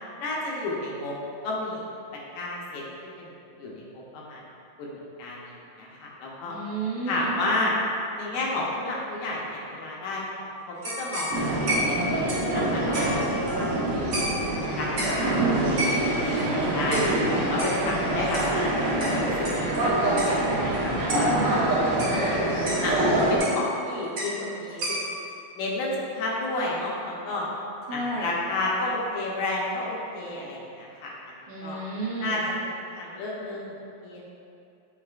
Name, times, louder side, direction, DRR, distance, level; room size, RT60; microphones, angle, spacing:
voice 1, 0.2-1.1 1.4-1.9 2.4-3.3 3.6-4.4 4.8-6.6 7.1-7.7 8.2-11.6 11.9-12.1 12.5-14.3 14.7-15.5 16.2-18.8 19.1-21.4 22.8-24.8 25.6-27.5 27.9-31.1 31.6-31.8 32.2-32.4 32.9-34.4, left 2 dB, 75° left, -4 dB, 2.5 m, -31 dB
voice 2, 6.5-7.4 21.3-21.8 27.9-28.3 31.5-32.4, right 2 dB, 75° right, -6 dB, 2.2 m, -32 dB
sound 1, 10.8-13.8 14.1-14.6 15.0-15.3 15.8-16.3 16.9-17.2 17.6-19.9 20.2-20.4 20.7-20.8 21.1-21.4 22.0-22.9 23.4-23.8 24.2-24.4 24.7-25.3, equal, 50° right, 1.8 m, -32 dB
sound 2, 11.3-23.4, right 1 dB, 90° right, 1.2 m, -25 dB
8.2 x 5.6 x 2.4 m, 2.6 s
omnidirectional pair, 4.5 m